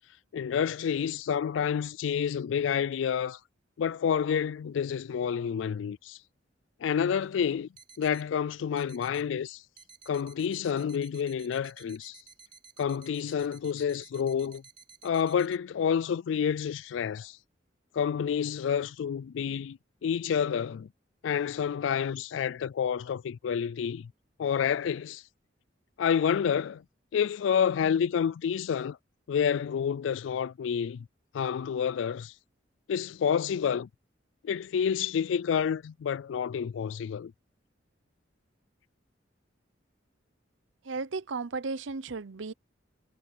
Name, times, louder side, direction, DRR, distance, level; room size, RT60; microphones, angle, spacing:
voice 1, 0.3-3.4 3.8-6.2 6.8-7.7 8.0-9.6 10.1-12.2 12.8-14.6 15.0-17.4 17.9-20.9 21.2-24.1 24.4-25.2 26.0-26.8 27.1-29.0 29.3-31.1 31.3-32.3 32.9-33.9 34.4-37.3, left 7 dB, 80° left, 0.3 m, -29 dB
sound 1, 7.2-7.3 7.8-8.3 8.8-9.3 9.8-15.6, right 5 dB, 50° right, 4.1 m, -54 dB
voice 2, 40.8-42.5, right 4 dB, 85° right, 0.7 m, -34 dB
head